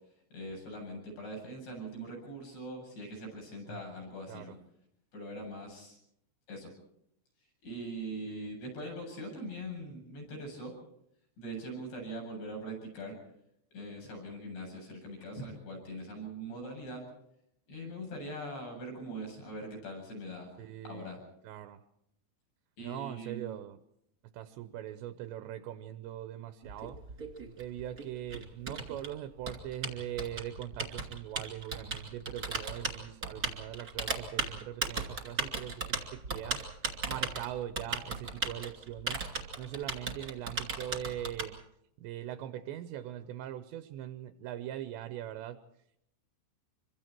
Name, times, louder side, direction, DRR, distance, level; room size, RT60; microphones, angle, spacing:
voice 1, 0.3-4.6 5.1-6.0 6.5-6.7 7.6-10.7 11.4-13.2 13.7-17.0 17.7-20.5 20.8-21.2 22.8-23.6, right 1 dB, 55° left, 0 dB, 9.9 m, -42 dB
voice 2, 20.6-21.2 21.4-21.8 22.8-23.8 24.3-27.0 27.6-36.6 37.1-39.2 39.6-41.6 42.0-45.6, right 12 dB, 75° right, 10 dB, 2.7 m, -41 dB
Typing, 26.6-41.5, right 3 dB, 25° right, 2.1 m, -36 dB
27.0 x 24.0 x 4.5 m, 0.76 s
omnidirectional pair, 5.9 m